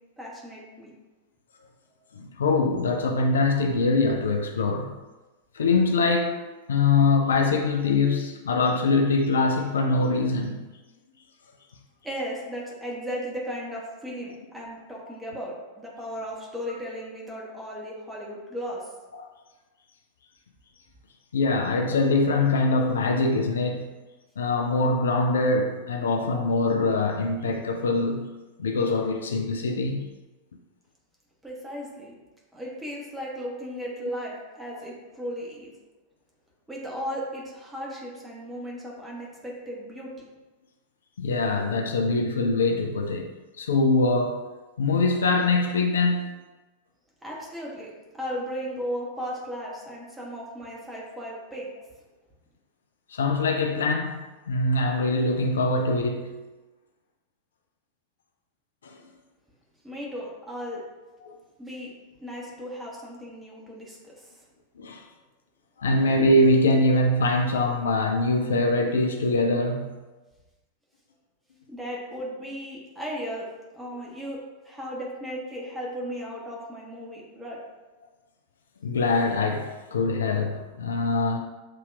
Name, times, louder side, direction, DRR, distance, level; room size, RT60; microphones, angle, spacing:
voice 1, 0.2-0.9 12.0-18.8 31.4-32.1 32.5-35.7 36.7-40.3 47.2-51.7 59.8-60.8 61.6-61.9 62.2-64.4 71.7-73.5 73.7-77.6, equal, 10° right, -4 dB, 1.2 m, -36 dB
voice 2, 2.1-4.9 5.5-6.4 6.7-10.6 19.2-19.3 21.3-23.9 24.4-30.1 34.7-34.8 41.2-43.3 43.6-44.4 44.8-46.3 53.1-56.4 58.8-59.0 61.2-61.4 64.8-65.0 65.8-70.0 78.8-81.4, left 3 dB, 65° left, 4 dB, 0.4 m, -23 dB
7.4 x 2.8 x 2.4 m, 1.2 s
figure-of-eight pair, 90°, 0 cm